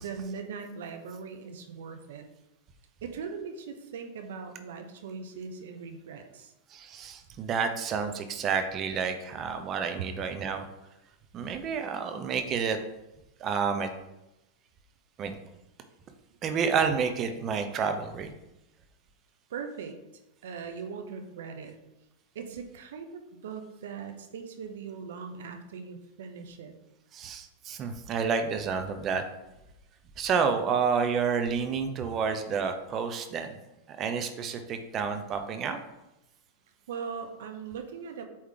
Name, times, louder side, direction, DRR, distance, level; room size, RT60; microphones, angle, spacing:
voice 1, 0.0-2.3 3.0-6.5 19.5-20.0 20.4-21.8 22.3-26.7 36.9-38.3, right 6 dB, 80° right, 6 dB, 0.8 m, -40 dB
voice 2, 6.7-10.6 11.3-12.8 13.4-13.9 15.2-15.3 16.4-18.3 27.1-29.2 30.2-33.6 33.9-35.8, right 6 dB, 30° right, 7 dB, 0.7 m, -29 dB
8.5 x 3.1 x 3.7 m, 0.93 s
supercardioid pair, 130°, 0 cm